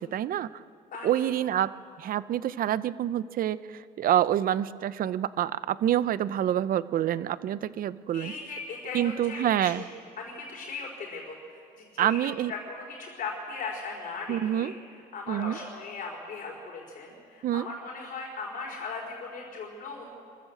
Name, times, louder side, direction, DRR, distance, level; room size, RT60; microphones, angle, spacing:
voice 1, 0.1-0.5 1.0-1.7 2.0-8.3 8.9-9.8 12.0-12.5 14.3-14.7 15.3-15.6 17.4-17.7, right 11 dB, 55° right, 16 dB, 0.7 m, -27 dB
voice 2, 0.9-1.3 8.1-9.8 10.2-14.7 15.1-20.1, left 4 dB, 55° left, -2 dB, 4.3 m, -38 dB
26.0 x 14.0 x 7.9 m, 2.4 s
cardioid pair, 110°, 17 cm